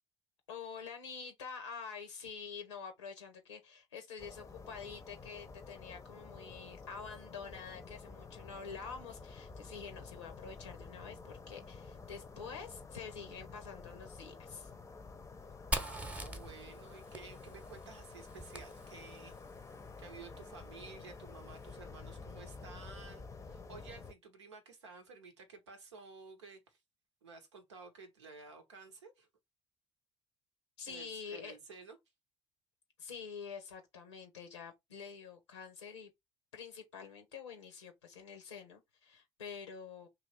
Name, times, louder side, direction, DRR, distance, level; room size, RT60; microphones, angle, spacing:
voice 1, 0.5-14.7 30.8-31.6 33.0-36.1 36.5-40.1, left 6 dB, 85° left, 0.6 m, -47 dB
sound 1, 4.2-24.1, left 4 dB, 20° left, 0.6 m, -50 dB
Fire, 15.7-19.4, right 1 dB, 10° right, 0.8 m, -42 dB
voice 2, 15.8-19.3 20.0-26.8 27.2-29.3 30.9-32.0, right 4 dB, 85° right, 0.8 m, -53 dB
2.9 x 2.4 x 4.1 m
figure-of-eight pair, 55°, 14 cm